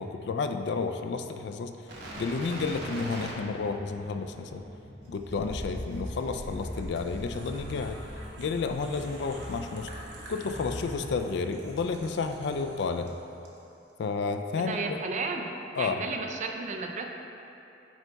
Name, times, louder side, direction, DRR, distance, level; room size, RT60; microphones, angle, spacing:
voice 1, 0.0-1.8 2.2-4.6 5.1-8.0 8.4-9.9 10.3-13.1 14.0-15.0 15.8-16.0, left 4 dB, 70° left, 7 dB, 0.4 m, -31 dB
sound 1, 1.9-13.1 13.4-13.6, equal, 70° right, 1.1 m, -41 dB
voice 2, 14.6-17.1, right 3 dB, 45° right, 4 dB, 0.5 m, -33 dB
9.0 x 3.4 x 4.0 m, 2.8 s
head